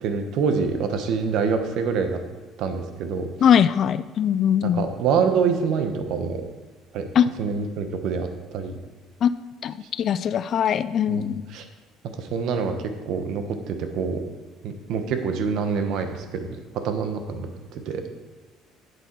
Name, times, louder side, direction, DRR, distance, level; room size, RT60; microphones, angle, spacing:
voice 1, 0.0-2.2 2.6-3.3 4.7-6.4 6.9-8.3 8.5-8.7 11.1-11.6 12.2-12.7 13.1-14.2 14.6-16.5 16.8-18.1, right 5 dB, 60° right, 7 dB, 1.0 m, -26 dB
voice 2, 3.4-4.9 7.1-7.3 9.2-9.3 9.6-11.4, left 8 dB, 40° left, 14 dB, 0.3 m, -21 dB
8.1 x 7.8 x 4.6 m, 1.4 s
cardioid pair, 145°, 0 cm